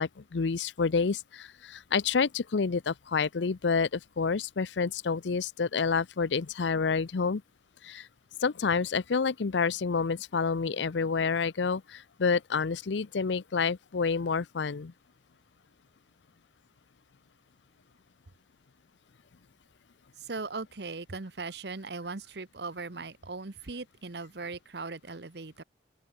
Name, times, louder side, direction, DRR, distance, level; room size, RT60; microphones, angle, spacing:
voice 1, 0.0-7.4 7.8-8.1 8.4-14.9, left 5 dB, 75° left, 0.6 m, -28 dB
voice 2, 20.2-25.6, right 3 dB, 65° right, 1.1 m, -39 dB
open air
head